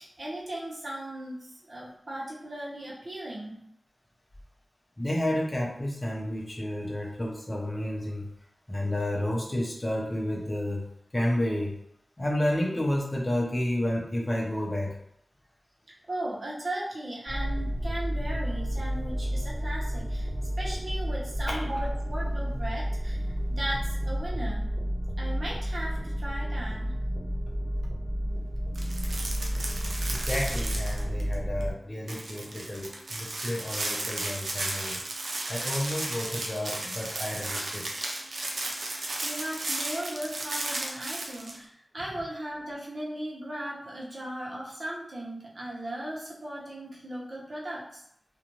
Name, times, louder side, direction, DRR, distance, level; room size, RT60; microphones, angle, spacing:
voice 1, 0.0-3.6 16.1-20.3 20.6-24.7 25.2-27.0 39.2-48.0, right 1 dB, 55° right, -5 dB, 0.9 m, -37 dB
voice 2, 5.0-8.3 8.7-10.9 11.1-11.8 12.2-15.0 21.5-21.7 30.1-35.0 35.5-37.9, left 1 dB, 30° left, -3 dB, 0.7 m, -31 dB
sound 1, 17.3-31.7, equal, ahead, 1.3 m, -31 dB
sound 2, 28.7-31.3 31.6-31.7 32.1-41.6, right 2 dB, 85° right, 0.5 m, -34 dB
2.5 x 2.2 x 3.0 m, 0.72 s
wide cardioid pair, 65°, 0 cm